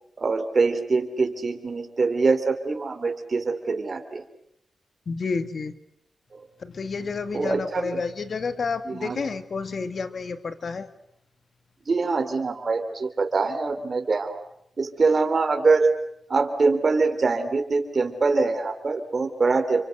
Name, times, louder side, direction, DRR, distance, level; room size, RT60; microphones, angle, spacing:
voice 1, 0.2-4.2 7.3-8.0 8.9-9.2 11.9-14.4 14.8-15.9 16.3-19.9, right 4 dB, 50° right, 6 dB, 3.6 m, -24 dB
voice 2, 5.1-5.7 6.6-10.9, left 4 dB, 60° left, 11 dB, 2.1 m, -30 dB
29.0 x 24.5 x 8.0 m, 0.75 s
cardioid pair, 60°, 0 cm